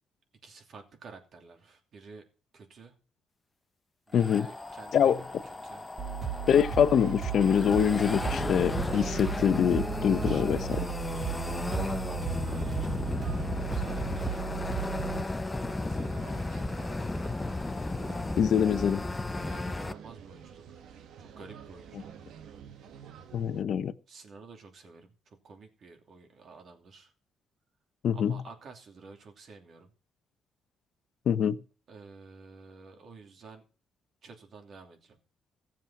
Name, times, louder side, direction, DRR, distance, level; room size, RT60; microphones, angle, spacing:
voice 1, 0.4-2.2 2.5-2.9 4.1-5.9 10.1-10.6 11.0-14.3 15.8-17.1 19.4-20.8 21.2-22.1 24.1-27.1 28.1-29.9 31.9-33.6 34.2-35.2, right 4 dB, 55° right, 2.8 m, -51 dB
voice 2, 4.1-4.5 4.9-5.2 6.5-10.6 18.4-19.0 23.3-23.9 28.0-28.3 31.3-31.6, left 8 dB, 65° left, 0.8 m, -24 dB
sound 1, 4.1-19.9, left 2 dB, 20° left, 0.8 m, -34 dB
sound 2, 6.0-15.2, right 7 dB, 40° right, 3.3 m, -35 dB
sound 3, 6.9-23.6, right 8 dB, 80° right, 1.4 m, -49 dB
15.0 x 7.4 x 5.9 m
cardioid pair, 90°, 0 cm